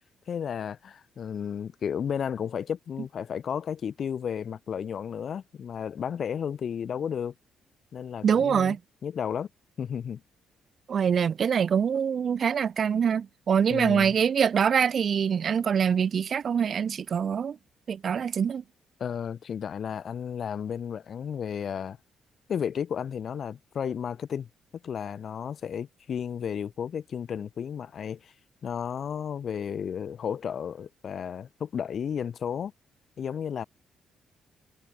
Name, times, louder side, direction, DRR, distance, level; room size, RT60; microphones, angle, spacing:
voice 1, 0.3-7.3 7.9-8.8 9.0-9.5 9.8-10.2 13.7-14.2 19.0-22.0 22.5-24.5 24.8-28.3 28.6-32.7 33.2-33.6, left 8 dB, 55° left, 0.6 m, -33 dB
voice 2, 8.2-8.8 10.9-17.6 17.9-18.6, right 7 dB, 50° right, 0.6 m, -24 dB
cardioid pair, 90°, 0 cm